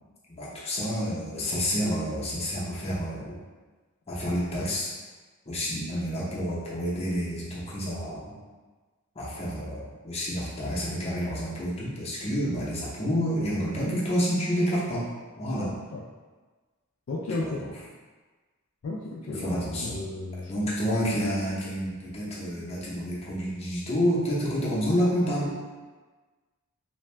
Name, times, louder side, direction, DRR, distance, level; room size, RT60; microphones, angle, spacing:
voice 1, 0.3-3.4 4.1-4.9 5.5-8.4 9.1-15.1 15.4-15.7 17.4-17.6 19.4-20.0 20.5-25.5, equal, 30° left, -7 dB, 0.7 m, -29 dB
voice 2, 15.6-16.0 17.1-17.6 18.8-19.5 19.8-20.5, left 2 dB, 65° left, -3 dB, 0.3 m, -34 dB
2.6 x 2.2 x 3.2 m, 1.3 s
head